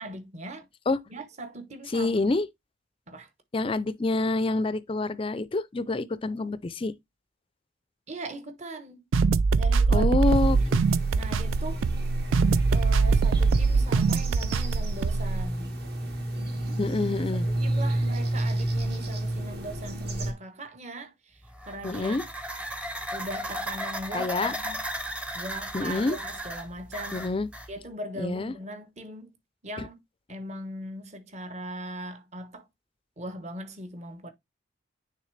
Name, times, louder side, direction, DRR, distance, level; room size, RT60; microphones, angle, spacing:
voice 1, 0.0-0.7 1.1-2.2 3.1-3.3 8.1-9.0 9.5-10.7 11.1-11.8 12.7-15.8 17.2-22.2 23.1-24.8 25.3-27.3 27.7-29.3 29.6-30.0 30.3-32.7 33.2-34.3, right 1 dB, 35° right, 1.0 m, -40 dB
voice 2, 1.9-2.5 3.5-6.9 9.9-10.6 16.8-17.5 21.8-22.2 24.1-24.5 25.7-26.2 27.1-27.5 28.2-28.5 29.8-29.9, left 2 dB, 25° left, 0.4 m, -27 dB
sound 1, 9.1-15.5, right 4 dB, 80° right, 0.4 m, -23 dB
sound 2, 10.3-20.3, right 1 dB, 55° right, 1.4 m, -31 dB
sound 3, 21.4-27.7, equal, 5° right, 0.7 m, -35 dB
9.4 x 3.4 x 3.2 m
head